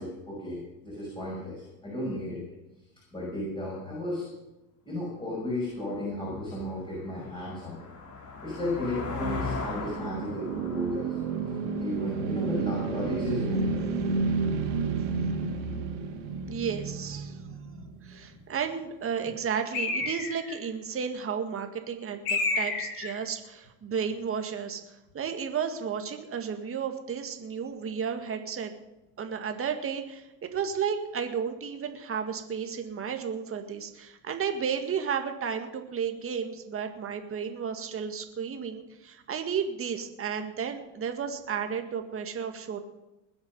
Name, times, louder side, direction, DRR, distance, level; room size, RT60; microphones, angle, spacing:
voice 1, 0.0-2.4 3.1-4.3 4.9-7.9 8.4-11.2 11.8-13.7 17.7-17.9, left 1 dB, 10° left, -5 dB, 6.0 m, -34 dB
sound 1, 5.6-5.7 6.2-12.8, left 4 dB, 35° left, 4.2 m, -39 dB
sound 2, 9.0-18.3, right 4 dB, 70° right, 3.3 m, -31 dB
voice 2, 16.5-17.4 18.0-24.8 25.1-28.7 29.2-42.8, right 7 dB, 25° right, 6 dB, 1.9 m, -33 dB
Bird, 19.7-20.6 22.3-23.2, left 3 dB, 55° left, 5.8 m, -29 dB
20.5 x 8.1 x 5.4 m, 0.97 s
hypercardioid pair, 100°, 48 cm